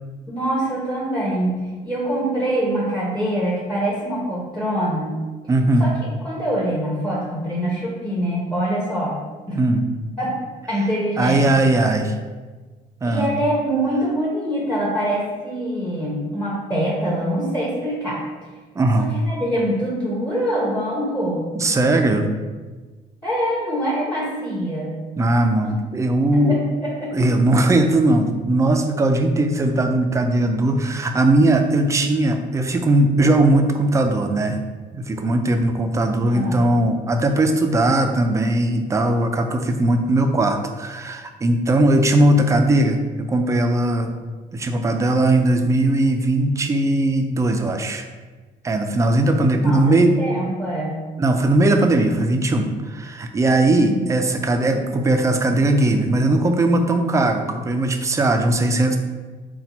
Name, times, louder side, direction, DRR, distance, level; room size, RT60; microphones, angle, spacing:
voice 1, 0.3-1.6 1.8-5.2 5.8-9.2 9.5-9.6 10.2-10.4 10.7-11.7 13.1-18.2 18.9-21.5 23.2-24.9 25.6-25.7 26.3-27.2 36.3-36.7 49.6-51.0 53.7-54.0, right 1 dB, 5° left, -5 dB, 0.8 m, -24 dB
voice 2, 5.5-5.9 9.5-9.8 11.2-12.1 13.0-13.3 18.8-19.1 21.5-22.3 25.2-26.6 27.1-34.6 34.9-44.1 44.5-48.1 48.6-50.2 51.2-59.0, right 1 dB, 20° right, 5 dB, 0.4 m, -19 dB
4.1 x 2.2 x 4.1 m, 1.3 s
cardioid pair, 110°, 17 cm